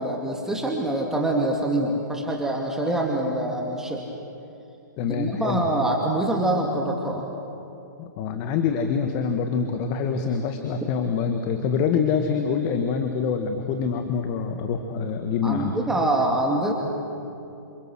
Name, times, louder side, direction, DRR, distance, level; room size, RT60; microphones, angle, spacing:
voice 1, 0.0-4.0 5.1-7.3 15.4-16.7, right 1 dB, 5° right, -1 dB, 2.5 m, -25 dB
voice 2, 5.0-5.6 8.0-15.8, left 6 dB, 35° left, 6 dB, 1.8 m, -25 dB
29.0 x 28.0 x 6.4 m, 2.8 s
figure-of-eight pair, 120°, 10 cm